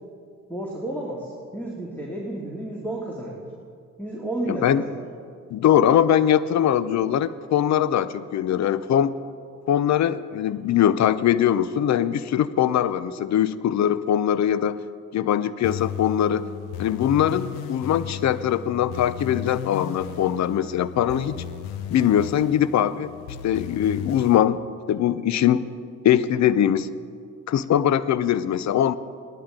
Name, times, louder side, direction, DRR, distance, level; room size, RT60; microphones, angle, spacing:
voice 1, 0.5-3.4 4.0-4.8, right 1 dB, 5° left, -4 dB, 2.4 m, -31 dB
voice 2, 4.5-4.8 5.5-9.1 9.7-14.8 15.1-16.5 16.8-21.3 21.9-23.1 23.4-24.6 24.9-25.6 26.0-26.9 27.5-29.0, left 10 dB, 50° left, 16 dB, 0.6 m, -21 dB
sound 1, 15.6-24.4, left 10 dB, 80° left, 0.8 m, -35 dB
17.0 x 12.0 x 3.8 m, 2.2 s
hypercardioid pair, 60°, 36 cm